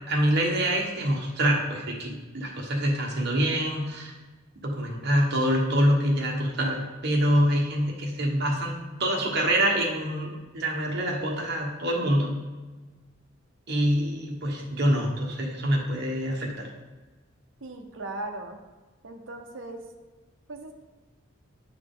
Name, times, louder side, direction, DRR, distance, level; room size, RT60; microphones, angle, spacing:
voice 1, 0.1-4.1 4.6-12.3 13.7-16.7, equal, 55° right, -1 dB, 1.4 m, -25 dB
voice 2, 17.6-18.6 19.0-19.8 20.5-20.8, right 2 dB, 75° right, 3 dB, 0.8 m, -38 dB
9.8 x 4.8 x 3.8 m, 1.3 s
head